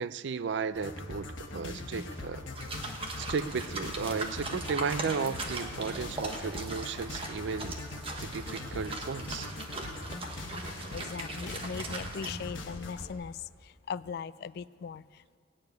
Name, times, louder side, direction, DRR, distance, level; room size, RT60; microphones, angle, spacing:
voice 1, 0.0-2.4 3.2-7.8 8.2-9.5, right 5 dB, 60° right, 15 dB, 0.4 m, -34 dB
sound 1, 0.7-13.1, left 2 dB, 70° left, 1.3 m, -41 dB
sound 2, 2.6-12.3, right 2 dB, 30° right, 1.3 m, -40 dB
voice 2, 10.9-15.4, left 6 dB, 50° left, 17 dB, 0.3 m, -39 dB
17.5 x 6.9 x 9.4 m, 2.1 s
head